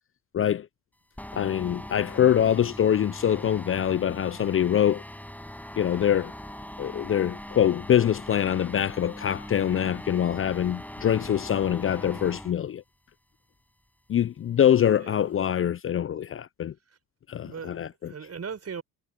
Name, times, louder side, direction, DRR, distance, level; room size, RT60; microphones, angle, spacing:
voice 1, 0.3-0.7 1.3-5.0 5.8-6.3 6.8-12.8 14.1-16.7 17.3-18.1, left 10 dB, 35° left, 0.5 m, -24 dB
sound 1, 1.2-12.5, left 1 dB, 5° left, 7.9 m, -41 dB
voice 2, 15.0-15.3 16.9-17.0 17.4-18.8, right 6 dB, 45° right, 5.9 m, -39 dB
supercardioid pair, 65°, 36 cm